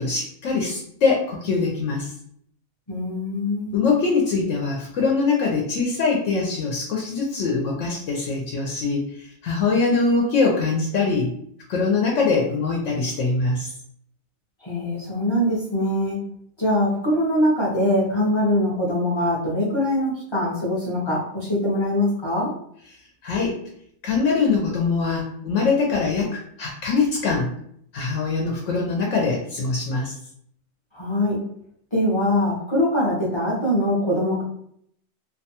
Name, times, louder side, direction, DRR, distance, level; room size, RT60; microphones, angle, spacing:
voice 1, 0.0-2.1 3.7-11.3 11.7-13.7 23.2-23.6 24.0-27.5 27.9-30.1, left 4 dB, 70° left, -1 dB, 0.9 m, -23 dB
voice 2, 2.9-3.8 14.6-16.2 16.6-22.5 30.9-31.4 31.9-34.4, left 1 dB, 30° left, -5 dB, 0.5 m, -22 dB
2.5 x 2.2 x 2.7 m, 0.67 s
omnidirectional pair, 1.4 m